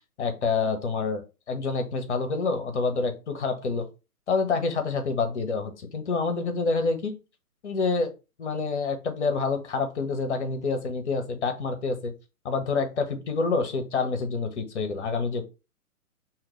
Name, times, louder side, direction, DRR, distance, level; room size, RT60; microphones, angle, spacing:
voice 1, 0.2-1.2 1.5-3.9 4.3-7.1 7.6-8.1 8.4-12.1 12.4-15.4, left 4 dB, 50° left, 6 dB, 1.1 m, -27 dB
5.6 x 3.0 x 3.1 m, 0.29 s
figure-of-eight pair, 120°, 44 cm